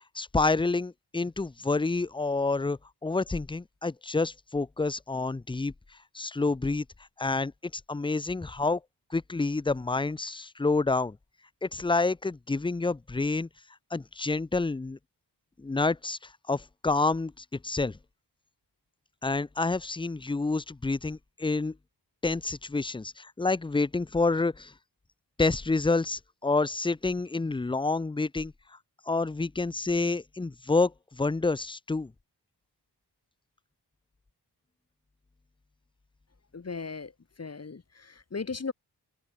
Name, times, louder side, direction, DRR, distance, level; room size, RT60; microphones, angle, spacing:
voice 1, 0.1-5.7 6.1-6.8 7.2-8.8 9.1-11.2 11.6-13.5 13.9-15.0 15.6-16.2 16.5-18.0 19.2-21.7 22.2-24.7 25.4-28.5 29.1-32.1, left 3 dB, 15° left, 0.4 m, -28 dB
voice 2, 36.5-38.7, left 4 dB, 35° left, 1.9 m, -37 dB
wide cardioid pair, 130°, 41 cm